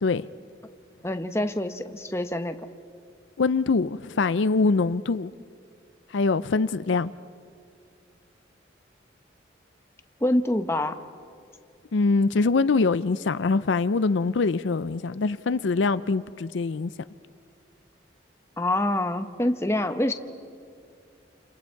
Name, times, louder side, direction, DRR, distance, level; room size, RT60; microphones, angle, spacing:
voice 1, 1.0-2.5 10.2-11.0 18.6-20.1, left 1 dB, 15° left, 0.9 m, -26 dB
voice 2, 3.4-5.3 6.1-7.1 11.9-16.9, left 4 dB, 80° left, 0.5 m, -23 dB
29.0 x 28.5 x 4.7 m
head